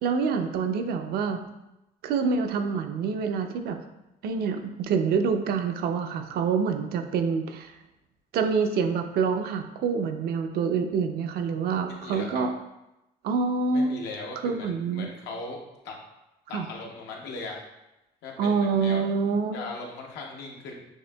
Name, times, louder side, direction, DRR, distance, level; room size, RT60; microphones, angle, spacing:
voice 1, 0.0-1.4 2.0-3.8 4.2-7.7 8.3-12.5 13.2-13.9 14.4-15.1 16.5-16.7 18.4-19.6, right 5 dB, 65° right, 6 dB, 0.5 m, -26 dB
voice 2, 11.9-12.4 13.7-15.6 15.8-16.0 16.5-17.6 18.2-19.0 19.5-20.7, left 3 dB, 85° left, 0 dB, 0.8 m, -38 dB
6.4 x 2.7 x 2.2 m, 0.94 s
cardioid pair, 110°, 17 cm